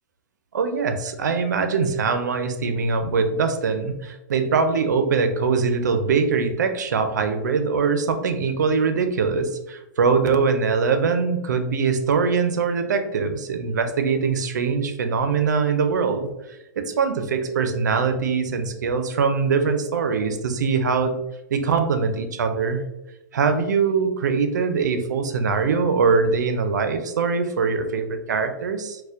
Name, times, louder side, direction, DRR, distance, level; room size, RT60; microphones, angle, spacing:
voice 1, 0.5-16.3 16.8-21.2 21.5-22.8 23.3-29.0, right 5 dB, 90° right, 8 dB, 0.5 m, -22 dB
4.1 x 2.1 x 2.4 m, 0.95 s
hypercardioid pair, 145°, 9 cm